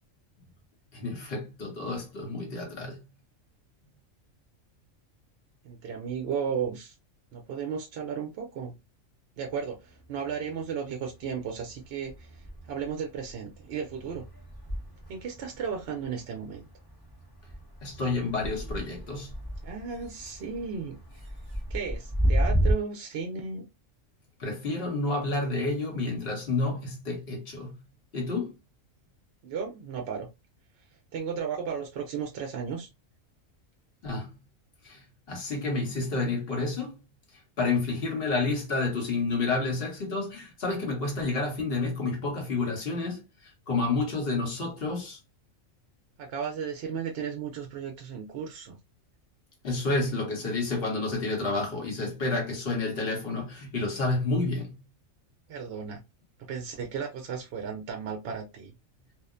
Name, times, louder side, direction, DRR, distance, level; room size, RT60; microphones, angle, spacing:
voice 1, 0.9-3.0 17.8-19.4 24.4-27.7 28.1-28.5 34.0-34.3 34.8-37.0 37.6-45.2 49.6-54.7, left 3 dB, 50° left, 1.1 m, -30 dB
voice 2, 5.6-6.9 7.3-8.8 9.4-14.2 15.1-16.6 19.6-21.0 21.7-23.6 29.4-30.3 31.1-32.9 46.2-48.8 55.5-56.0 56.5-58.7, right 6 dB, 65° right, 0.7 m, -34 dB
sound 1, 9.6-10.7 11.0-22.7, equal, 20° left, 0.9 m, -33 dB
2.8 x 2.1 x 2.4 m
omnidirectional pair, 1.4 m